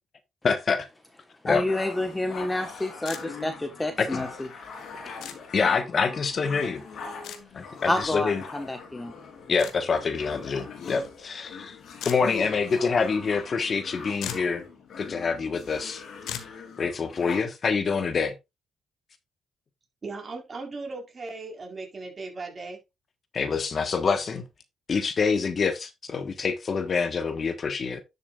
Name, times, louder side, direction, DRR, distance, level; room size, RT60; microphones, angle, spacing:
voice 1, 0.4-0.9 1.4-1.6 4.0-4.2 5.5-6.8 7.5-8.4 9.5-11.8 12.0-14.6 15.0-16.0 16.4-16.5 16.8-18.3 23.3-24.4 24.9-28.0, left 5 dB, 45° left, 1.3 m, -26 dB
voice 2, 1.4-4.5 5.0-5.3 7.8-9.1, left 1 dB, 15° left, 1.3 m, -29 dB
sound 1, 1.7-17.4, left 5 dB, 65° left, 3.2 m, -41 dB
sound 2, 3.0-3.2 5.2-5.4 7.2-7.4 9.6-9.8 12.0-12.2 13.8-13.9 14.2-14.5 16.3-16.5, left 9 dB, 80° left, 1.6 m, -36 dB
voice 3, 20.0-22.8, right 3 dB, 35° right, 4.1 m, -37 dB
11.0 x 7.0 x 2.4 m
cardioid pair, 90°, 0 cm